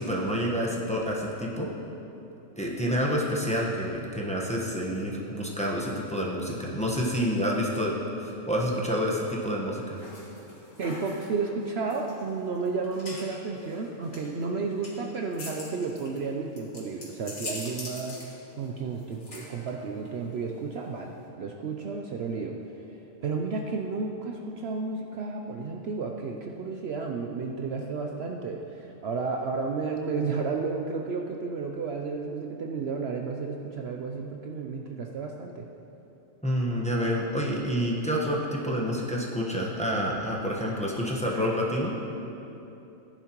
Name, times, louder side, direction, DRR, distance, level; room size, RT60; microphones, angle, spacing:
voice 1, 0.0-1.7 2.6-8.0 8.2-10.0 36.4-41.9, equal, 5° left, -3 dB, 1.1 m, -28 dB
sound 1, 10.0-21.3, left 1 dB, 60° left, 2.2 m, -44 dB
voice 2, 10.8-18.2 18.6-22.6 23.2-35.7, right 4 dB, 60° right, 2 dB, 0.8 m, -32 dB
15.0 x 10.0 x 3.0 m, 2.9 s
omnidirectional pair, 1.4 m